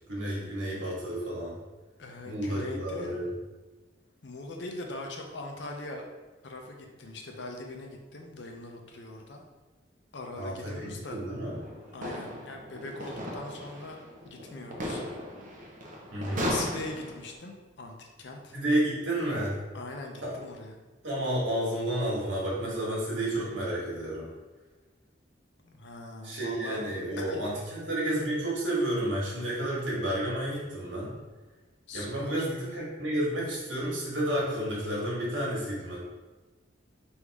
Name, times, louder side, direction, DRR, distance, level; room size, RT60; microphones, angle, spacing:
voice 1, 0.1-1.6 2.2-3.3 10.4-11.6 16.1-16.4 18.5-19.6 20.2-20.4 21.0-24.3 26.2-31.1 31.9-36.0, right 1 dB, 85° right, -5 dB, 1.5 m, -31 dB
voice 2, 2.0-3.2 4.2-6.0 6.4-9.4 10.1-11.2 11.9-14.0 14.3-15.0 16.3-18.6 19.7-20.8 25.6-26.8 27.2-27.4 31.9-32.5, left 2 dB, 65° left, 2 dB, 0.6 m, -41 dB
sound 1, 11.4-17.3, equal, 45° right, 0.6 m, -37 dB
3.5 x 2.7 x 4.6 m, 1.2 s
head